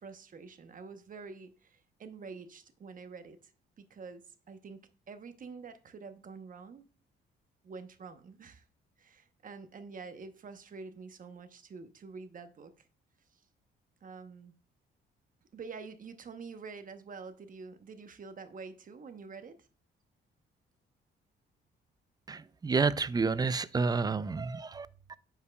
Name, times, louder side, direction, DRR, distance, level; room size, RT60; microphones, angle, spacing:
voice 1, 0.0-3.5 3.8-6.8 7.6-8.6 9.0-12.9 13.3-13.4 14.0-14.5 15.5-19.7 24.7-24.8, right 4 dB, 45° right, 0.9 m, -47 dB
voice 2, 22.3-25.2, right 4 dB, 20° right, 0.4 m, -30 dB
9.5 x 5.5 x 2.3 m
cardioid pair, 90°, 20 cm